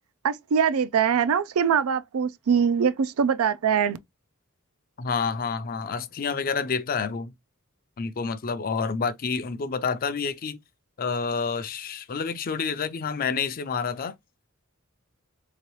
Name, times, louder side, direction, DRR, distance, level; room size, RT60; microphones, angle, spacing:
voice 1, 0.2-4.0, right 7 dB, 90° right, 0.4 m, -23 dB
voice 2, 5.0-7.3 8.0-10.6 11.0-14.1, left 5 dB, 45° left, 0.5 m, -28 dB
3.7 x 2.9 x 3.0 m
head